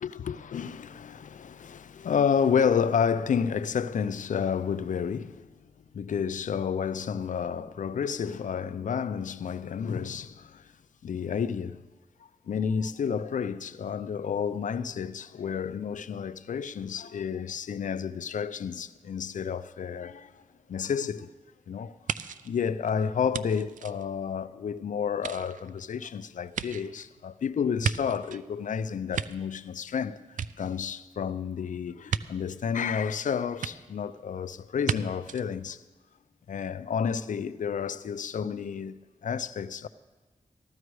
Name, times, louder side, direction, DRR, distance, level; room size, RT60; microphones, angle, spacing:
voice 1, 0.0-5.5 5.9-10.6 11.0-11.8 12.5-20.4 20.7-21.3 21.7-22.0 22.4-35.8 36.5-39.9, left 7 dB, 75° left, 0.5 m, -30 dB
sound 1, 22.1-24.7 25.1-28.5 28.9-30.0 30.3-31.2 32.1-32.2 33.6-33.7 34.8-35.0 35.3-35.4, right 7 dB, 85° right, 0.4 m, -35 dB
14.0 x 13.5 x 4.8 m
cardioid pair, 60°, 13 cm